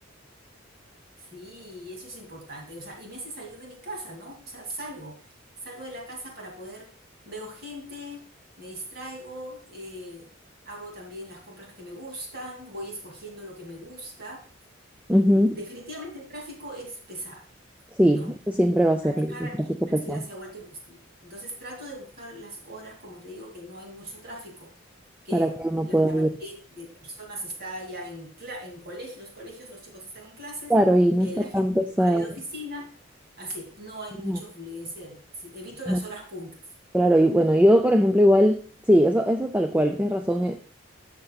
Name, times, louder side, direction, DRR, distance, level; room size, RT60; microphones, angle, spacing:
voice 1, 1.2-5.3 5.6-6.9 7.2-8.2 8.6-10.3 10.6-14.4 15.3-17.5 18.1-18.3 19.0-24.7 25.2-25.5 25.8-30.7 31.2-31.6 32.0-32.9 33.4-36.6, equal, 50° right, -1 dB, 2.6 m, -40 dB
voice 2, 15.1-15.6 18.0-19.5 19.9-20.2 25.3-26.3 30.7-32.3 34.2-34.4 35.9-36.0 36.9-40.7, equal, 5° right, 6 dB, 0.4 m, -21 dB
12.5 x 6.7 x 2.3 m, 0.41 s
head